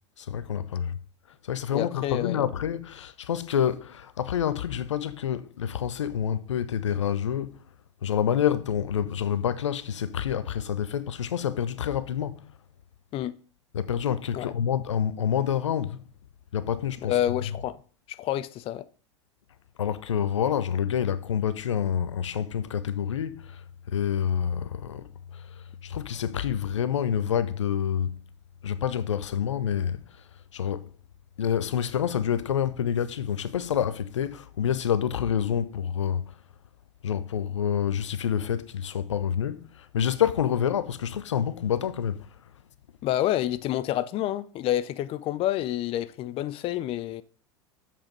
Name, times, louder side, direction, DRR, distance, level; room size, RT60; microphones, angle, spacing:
voice 1, 0.2-1.0 1.4-7.6 8.0-12.5 13.7-16.0 16.5-17.2 19.8-28.2 28.6-30.2 30.5-30.9 31.4-36.4 37.0-42.3, left 9 dB, 80° left, 0.6 m, -28 dB
voice 2, 1.7-2.4 13.1-13.4 14.3-14.5 17.0-17.8 18.1-18.9 43.0-47.2, left 12 dB, 40° left, 0.5 m, -28 dB
7.3 x 6.7 x 5.3 m
hypercardioid pair, 85°, 15 cm